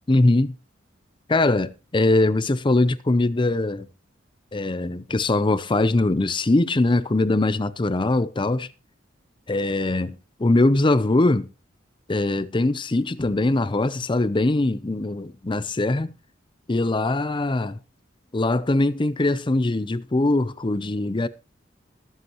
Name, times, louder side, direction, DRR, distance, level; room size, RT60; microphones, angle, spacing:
voice 1, 0.1-0.5 1.3-3.9 4.5-8.7 9.5-11.5 12.1-16.1 16.7-17.8 18.3-21.3, left 2 dB, 25° left, 0.6 m, -22 dB
20.5 x 8.1 x 3.0 m
head